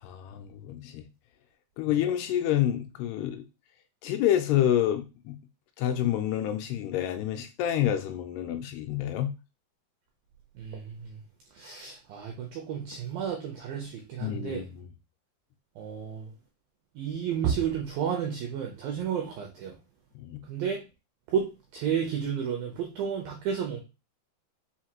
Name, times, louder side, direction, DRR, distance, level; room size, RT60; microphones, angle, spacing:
voice 1, 0.0-1.1 1.8-3.4 4.0-5.4 5.8-9.3 14.2-14.9 20.2-20.4, left 11 dB, 80° left, 2.5 m, -28 dB
voice 2, 10.6-11.1 11.6-14.6 15.8-16.3 17.0-19.8 20.5-20.8 21.3-23.8, right 8 dB, 80° right, 2.0 m, -32 dB
6.3 x 2.6 x 2.9 m
omnidirectional pair, 4.8 m